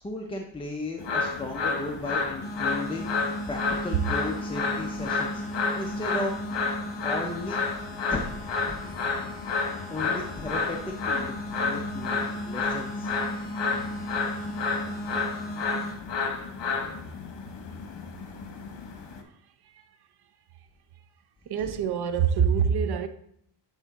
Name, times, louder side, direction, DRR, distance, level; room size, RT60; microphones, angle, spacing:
voice 1, 0.0-3.2 3.5-5.4 5.7-6.3 7.0-7.6 8.1-8.3 8.7-9.0 9.9-13.1 21.6-21.7, left 2 dB, 10° left, 0.5 m, -35 dB
sound 1, 1.0-19.2, left 4 dB, 70° left, 1.1 m, -31 dB
sound 2, 2.4-15.9, equal, 50° left, 2.7 m, -37 dB
voice 2, 21.5-23.1, right 7 dB, 60° right, 0.7 m, -25 dB
8.0 x 3.6 x 4.0 m
cardioid pair, 125°, 45 cm